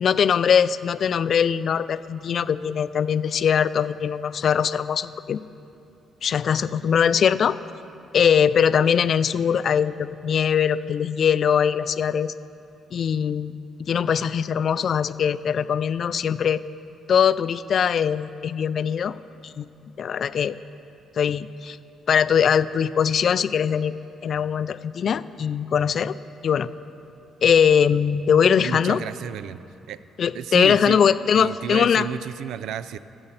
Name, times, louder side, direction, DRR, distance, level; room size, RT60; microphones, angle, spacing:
voice 1, 0.0-5.4 6.2-7.6 8.1-12.3 12.9-13.5 13.8-16.6 17.1-19.1 19.4-19.7 20.0-20.6 21.2-21.8 22.1-23.9 24.2-26.1 26.4-26.7 27.4-29.0 30.2-32.1, left 7 dB, 55° left, 15 dB, 0.3 m, -21 dB
voice 2, 28.6-29.6 29.9-30.0 30.3-31.0 31.4-33.0, right 9 dB, 80° right, 15 dB, 0.3 m, -31 dB
12.5 x 7.7 x 5.8 m, 2.7 s
cardioid pair, 90°, 0 cm